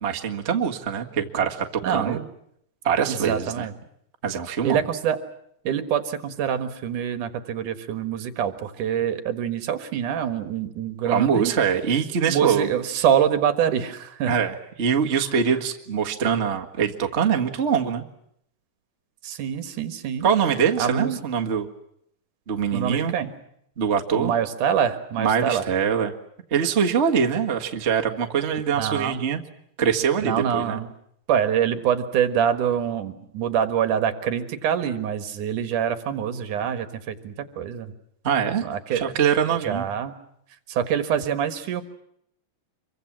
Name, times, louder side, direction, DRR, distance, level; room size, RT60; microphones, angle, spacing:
voice 1, 0.0-2.2 2.8-3.7 4.2-4.8 11.0-12.7 14.3-18.0 20.2-21.7 22.5-23.1 23.8-24.3 25.2-26.1 26.5-29.4 29.8-30.8 38.2-38.6 38.9-39.8, right 7 dB, 30° right, 3 dB, 1.2 m, -23 dB
voice 2, 1.8-2.2 3.0-3.7 4.6-5.2 5.6-11.5 12.3-14.4 19.2-20.3 20.8-21.1 22.7-23.3 24.1-25.7 28.7-29.2 30.2-30.9 31.3-37.9 38.6-39.1 39.6-40.2 40.7-41.8, right 8 dB, 70° right, 10 dB, 3.0 m, -25 dB
26.0 x 24.0 x 7.4 m, 0.73 s
omnidirectional pair, 3.9 m